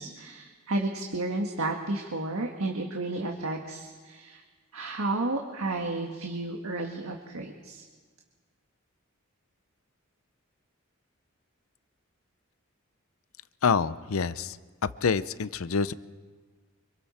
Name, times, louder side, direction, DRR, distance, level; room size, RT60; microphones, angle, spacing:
voice 1, 0.0-4.4 4.7-7.8, right 2 dB, 85° right, 2 dB, 1.6 m, -32 dB
voice 2, 13.6-14.6 15.0-15.9, left 5 dB, 80° left, 16 dB, 0.6 m, -26 dB
26.5 x 24.5 x 4.3 m, 1.5 s
head